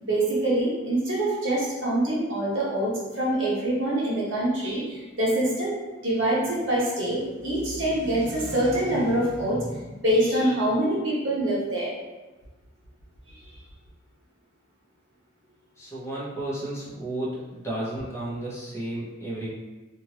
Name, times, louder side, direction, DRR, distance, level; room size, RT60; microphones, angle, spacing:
voice 1, 0.0-2.9 3.2-5.8 6.0-11.9, right 1 dB, 70° right, -7 dB, 1.2 m, -25 dB
voice 2, 15.8-19.5, right 1 dB, 15° left, -8 dB, 0.8 m, -33 dB
2.8 x 2.5 x 3.0 m, 1.1 s
head